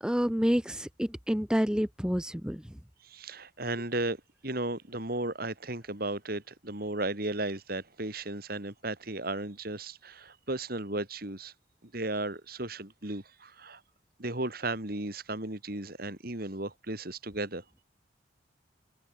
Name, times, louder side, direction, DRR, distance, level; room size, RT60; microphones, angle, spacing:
voice 1, 0.0-2.6, equal, 5° right, 1.0 m, -28 dB
voice 2, 3.0-11.5 11.8-13.8 14.2-17.6, right 2 dB, 50° right, 2.9 m, -35 dB
open air
head